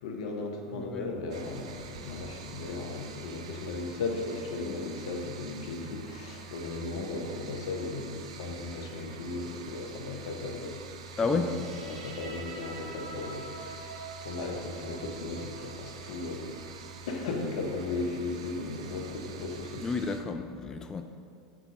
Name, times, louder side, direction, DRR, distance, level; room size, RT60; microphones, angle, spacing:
voice 1, 0.0-10.8 11.3-11.5 11.8-16.8 17.1-19.8, left 3 dB, 70° left, 2 dB, 1.0 m, -36 dB
voice 2, 0.7-1.1 11.2-11.5 19.8-21.0, left 4 dB, 20° left, 6 dB, 0.3 m, -31 dB
sound 1, 1.3-20.2, right 4 dB, 75° right, 0.5 m, -46 dB
sound 2, 11.2-18.2, right 3 dB, 90° right, 1.2 m, -47 dB
6.2 x 3.9 x 6.0 m, 2.4 s
hypercardioid pair, 95°, 3 cm